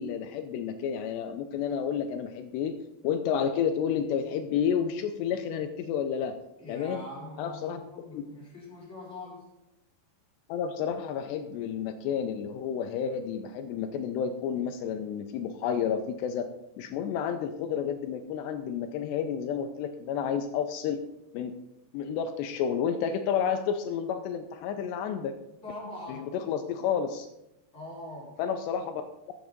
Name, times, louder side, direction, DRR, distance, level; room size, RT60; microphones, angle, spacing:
voice 1, 0.0-2.8 3.0-6.3 6.7-7.0 7.4-7.8 8.1-8.2 10.5-16.5 16.8-21.0 21.3-21.6 21.9-25.3 26.1-27.3 28.4-29.0, left 8 dB, 80° left, 7 dB, 2.8 m, -30 dB
voice 2, 6.6-9.5 25.6-26.3 27.7-28.4, left 1 dB, 15° left, -6 dB, 4.4 m, -42 dB
14.0 x 7.1 x 5.2 m, 0.88 s
omnidirectional pair, 4.9 m